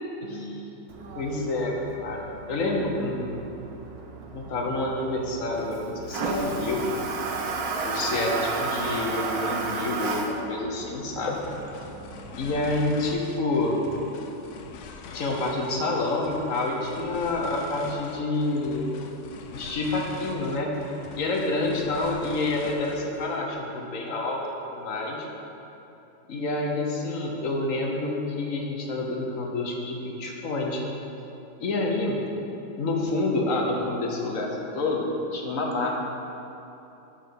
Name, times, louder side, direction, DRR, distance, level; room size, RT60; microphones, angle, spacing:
voice 1, 0.2-0.6 1.1-3.2 4.3-6.9 7.8-11.4 12.4-13.8 15.1-18.9 19.5-20.7 21.1-25.3 26.3-30.8 31.6-32.2 32.8-35.1 35.3-36.0, left 2 dB, 55° left, 0 dB, 1.2 m, -28 dB
Toilet flush, 0.9-13.1, right 3 dB, 65° right, 1.2 m, -34 dB
sound 1, 11.2-23.4, left 5 dB, 75° left, 0.7 m, -44 dB
6.1 x 5.1 x 6.8 m, 3.0 s
omnidirectional pair, 1.8 m